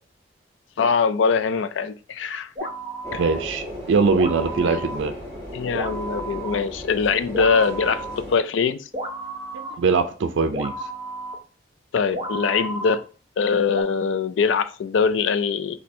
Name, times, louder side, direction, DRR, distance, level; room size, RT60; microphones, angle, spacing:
voice 1, 0.8-2.5 3.1-3.2 5.5-8.9 11.9-13.0 13.4-15.8, left 5 dB, 80° left, 0.4 m, -22 dB
sound 1, 2.5-3.6 4.1-5.2 5.7-6.6 7.3-8.1 8.9-9.7 10.5-11.3 12.1-13.0 13.7-13.8, right 2 dB, 30° right, 1.0 m, -32 dB
sound 2, 3.0-8.4, equal, 15° left, 1.1 m, -35 dB
voice 2, 3.2-5.1 9.5-10.7, right 4 dB, 80° right, 0.4 m, -22 dB
4.2 x 2.7 x 4.2 m
head